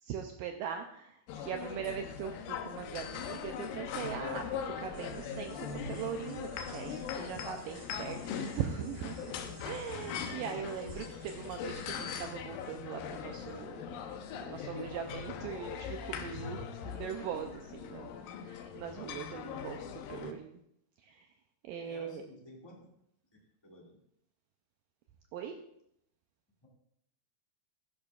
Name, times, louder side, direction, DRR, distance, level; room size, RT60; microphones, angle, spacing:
voice 1, 0.0-9.4 9.6-14.0 14.3-18.2 18.4-20.6 21.0-21.3 21.6-22.2 25.3-25.6, right 8 dB, 85° right, 5 dB, 1.9 m, -41 dB
sound 1, 1.3-20.3, left 7 dB, 75° left, 2.3 m, -41 dB
sound 2, 4.9-12.3, right 3 dB, 50° right, 2.2 m, -58 dB
voice 2, 21.8-22.9 23.3-23.9 26.6-26.7, left 1 dB, 20° left, -3 dB, 0.7 m, -53 dB
13.0 x 10.5 x 2.4 m, 0.74 s
omnidirectional pair, 4.5 m